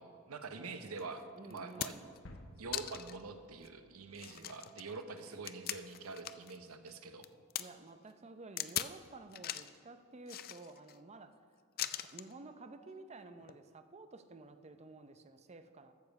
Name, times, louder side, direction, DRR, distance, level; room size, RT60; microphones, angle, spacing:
voice 1, 0.0-2.0 2.6-7.3, right 4 dB, 85° right, 8 dB, 0.9 m, -46 dB
sound 1, 1.0-1.1 1.5-2.2 2.7-3.2 3.6-3.7 4.1-6.6 6.9-7.6 8.6-9.0 9.3-9.8 10.3-11.0 11.8-12.3 13.4-13.5, left 12 dB, 45° left, 0.4 m, -40 dB
voice 2, 1.4-2.2 7.6-11.4 12.0-15.9, right 3 dB, 30° right, 9 dB, 0.6 m, -52 dB
sound 2, 2.2-4.7, left 1 dB, 60° left, 1.1 m, -56 dB
13.5 x 7.1 x 5.3 m, 2.3 s
head